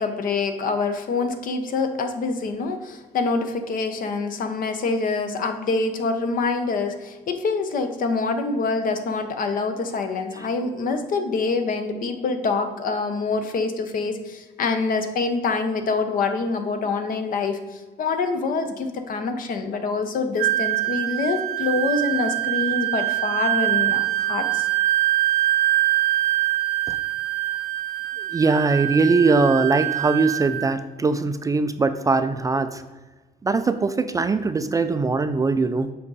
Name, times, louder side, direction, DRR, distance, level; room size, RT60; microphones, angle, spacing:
voice 1, 0.0-24.7, left 4 dB, 55° left, 7 dB, 1.0 m, -25 dB
Wind instrument woodwind instrument, 20.4-30.8, right 14 dB, 85° right, 0.5 m, -24 dB
voice 2, 28.3-32.8 33.4-35.9, right 3 dB, 20° right, 10 dB, 0.4 m, -21 dB
7.4 x 4.9 x 4.1 m, 1.3 s
cardioid pair, 110°, 17 cm